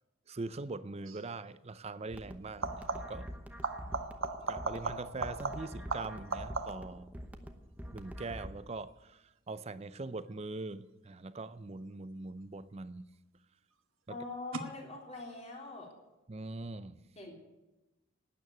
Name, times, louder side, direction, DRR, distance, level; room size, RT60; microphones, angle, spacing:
voice 1, 0.3-3.3 4.5-7.1 7.9-13.1 14.1-14.2 16.3-17.0, right 3 dB, 30° right, 0.5 m, -42 dB
sound 1, 1.0-1.3 2.5-3.3 3.6-7.0 12.4-13.0 14.5-14.6, right 3 dB, 75° right, 1.3 m, -38 dB
sound 2, 2.1-8.5, equal, 5° right, 0.9 m, -46 dB
voice 2, 14.1-15.9 17.2-17.3, left 3 dB, 30° left, 3.5 m, -43 dB
12.5 x 9.4 x 9.6 m
head